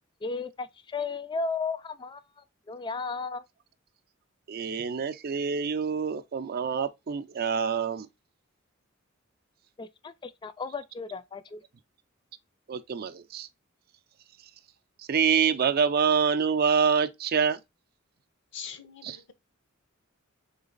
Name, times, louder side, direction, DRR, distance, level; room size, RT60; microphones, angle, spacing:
voice 1, 0.2-3.4 9.8-11.6, left 4 dB, 20° left, 0.3 m, -35 dB
voice 2, 4.5-8.1 12.7-13.5 15.1-17.6 19.0-19.2, right 6 dB, 50° right, 0.4 m, -26 dB
voice 3, 18.5-19.3, left 7 dB, 60° left, 0.7 m, -42 dB
3.9 x 3.2 x 3.7 m
head